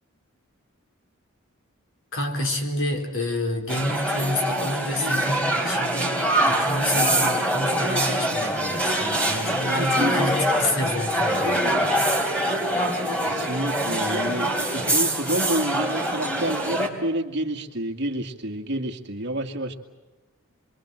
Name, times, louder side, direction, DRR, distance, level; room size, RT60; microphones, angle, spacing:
voice 1, 2.1-11.9, left 1 dB, 65° left, 4 dB, 4.3 m, -29 dB
sound 1, 3.7-16.9, right 1 dB, 5° left, 3.8 m, -24 dB
voice 2, 13.0-14.5 14.7-19.7, right 1 dB, 55° right, 3 dB, 2.3 m, -29 dB
27.5 x 23.5 x 7.7 m, 1.1 s
head